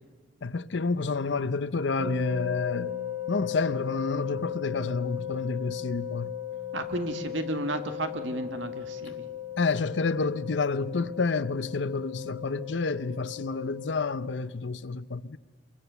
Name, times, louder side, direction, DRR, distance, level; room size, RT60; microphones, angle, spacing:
voice 1, 0.4-3.0 3.3-6.4 9.6-15.4, left 4 dB, 75° left, 0.7 m, -29 dB
sound 1, 2.0-14.3, left 10 dB, 40° right, 3.2 m, -37 dB
voice 2, 6.7-9.3, right 2 dB, 85° right, 1.9 m, -33 dB
25.0 x 23.5 x 7.0 m
head